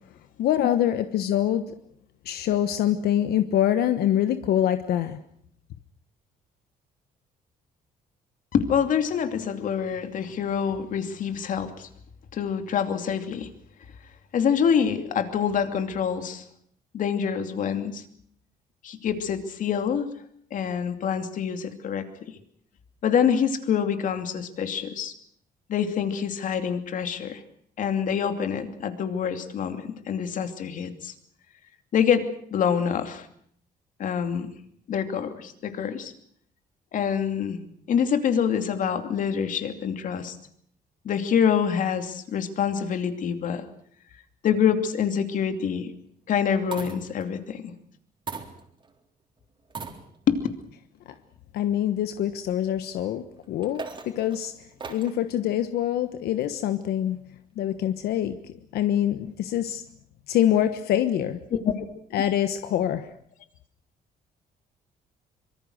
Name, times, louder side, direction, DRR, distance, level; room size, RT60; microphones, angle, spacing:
voice 1, 0.4-1.7 2.2-5.2 51.5-54.5 54.9-57.2 57.6-58.4 58.7-59.8 60.3-61.4 62.1-63.1, left 11 dB, 90° left, 10 dB, 1.3 m, -25 dB
voice 2, 8.5-11.9 12.3-13.5 14.3-16.4 16.9-18.0 18.8-20.1 20.5-22.1 23.0-25.1 25.7-27.4 27.8-31.1 31.9-32.2 32.5-33.3 34.0-34.5 34.9-36.1 36.9-37.6 37.9-40.4 41.0-43.6 44.4-45.9 46.3-47.7 50.3-50.4 61.6-61.8, left 7 dB, 55° left, 8 dB, 2.7 m, -26 dB
sound 1, 45.0-45.4 46.4-47.3 48.3-49.0 49.7-50.4 51.1-51.2 53.4-55.2 56.4-56.9, right 4 dB, 30° right, 3.7 m, -39 dB
25.0 x 23.5 x 6.5 m, 0.65 s
cardioid pair, 145°, 16 cm